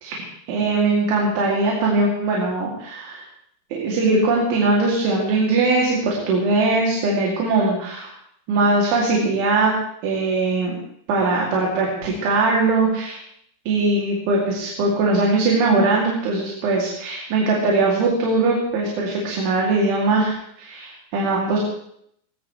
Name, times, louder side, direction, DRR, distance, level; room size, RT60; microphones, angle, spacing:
voice 1, 0.0-3.2 3.7-8.1 8.5-9.7 10.0-10.8 11.1-13.2 13.7-21.6, right 3 dB, 75° right, -3 dB, 5.0 m, -20 dB
20.5 x 19.5 x 3.2 m, 0.71 s
omnidirectional pair, 5.6 m